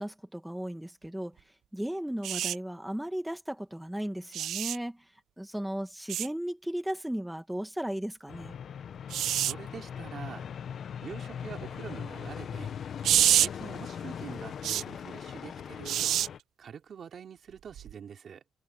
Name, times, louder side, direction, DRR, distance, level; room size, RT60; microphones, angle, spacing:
voice 1, 0.0-1.4 1.7-5.0 5.4-8.6, equal, 5° right, 2.3 m, -35 dB
sound 1, 2.2-2.6 4.3-4.8 6.1-6.3 9.1-9.5 13.0-13.5 14.6-14.8 15.9-16.3 17.8-17.9, right 11 dB, 75° right, 0.3 m, -26 dB
sound 2, 8.3-16.4, left 8 dB, 60° left, 1.1 m, -40 dB
voice 2, 9.3-10.5 11.0-12.7 13.3-16.2 16.6-18.4, right 7 dB, 55° right, 4.2 m, -45 dB
cardioid pair, 90°, 0 cm